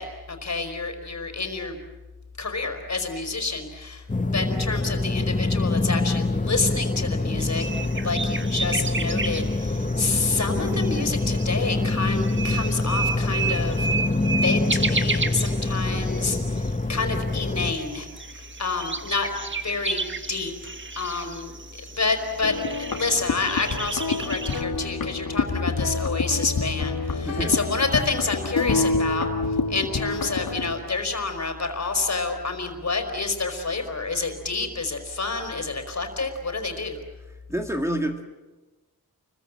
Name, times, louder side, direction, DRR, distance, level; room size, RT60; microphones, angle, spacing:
voice 1, 0.0-1.8 2.4-4.0 4.3-7.6 8.0-13.9 14.3-18.1 18.3-19.3 19.6-21.5 22.0-22.5 22.9-29.3 29.7-37.0, left 4 dB, 45° left, 6 dB, 4.7 m, -28 dB
sound 1, 4.1-17.7, left 2 dB, 20° left, 1.2 m, -25 dB
sound 2, 7.4-16.8 17.1-17.2 17.4-24.6, right 4 dB, 30° right, 1.5 m, -32 dB
sound 3, 22.4-30.7, left 3 dB, 70° left, 2.9 m, -27 dB
voice 2, 27.2-27.6 37.5-38.2, equal, 10° right, 1 dB, 2.0 m, -27 dB
29.5 x 23.0 x 7.6 m, 1.2 s
wide cardioid pair, 115°, 37 cm